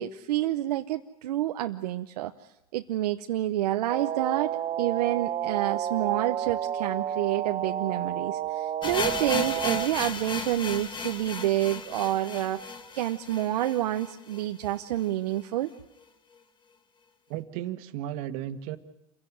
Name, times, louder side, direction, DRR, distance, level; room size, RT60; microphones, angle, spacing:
voice 1, 0.0-2.3 2.7-15.7, right 14 dB, 85° right, 6 dB, 0.9 m, -28 dB
sound 1, 3.9-9.9, right 10 dB, 30° right, 0.9 m, -31 dB
sound 2, 8.8-14.7 15.0-15.1 15.3-15.4 16.0-16.1, left 5 dB, 25° left, 2.0 m, -35 dB
voice 2, 17.3-18.8, right 12 dB, 65° right, 10 dB, 1.7 m, -34 dB
27.5 x 16.5 x 9.4 m, 0.91 s
supercardioid pair, 115°, 20 cm